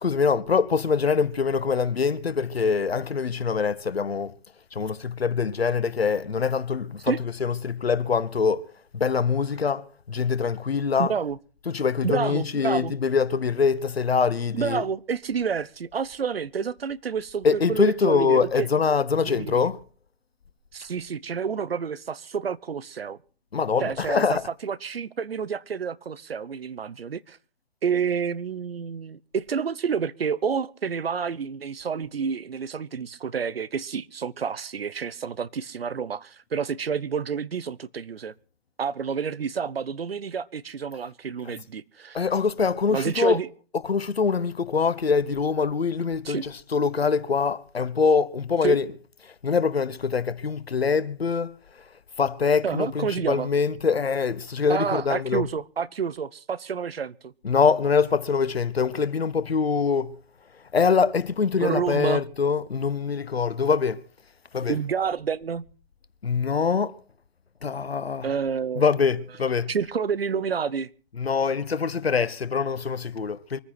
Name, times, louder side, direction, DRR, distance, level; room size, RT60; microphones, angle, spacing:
voice 1, 0.0-4.3 4.7-8.6 8.9-11.2 11.6-14.9 17.4-19.8 23.5-24.5 41.4-41.5 42.1-43.4 43.7-49.0 49.4-51.6 52.2-55.5 57.4-60.2 60.7-64.0 64.5-64.8 66.2-67.0 67.6-68.3 68.8-69.7 71.1-73.6, left 5 dB, 75° left, 1.3 m, -24 dB
voice 2, 11.0-11.4 12.0-12.9 14.5-18.7 19.2-19.6 20.7-23.2 23.8-27.4 27.8-38.3 38.8-42.3 42.9-43.5 46.2-46.5 48.6-48.8 52.6-53.5 54.7-57.3 61.6-62.2 64.7-65.6 68.2-68.8 69.7-70.9, right 6 dB, 65° right, 1.0 m, -29 dB
24.0 x 9.9 x 5.9 m
figure-of-eight pair, 135°, 31 cm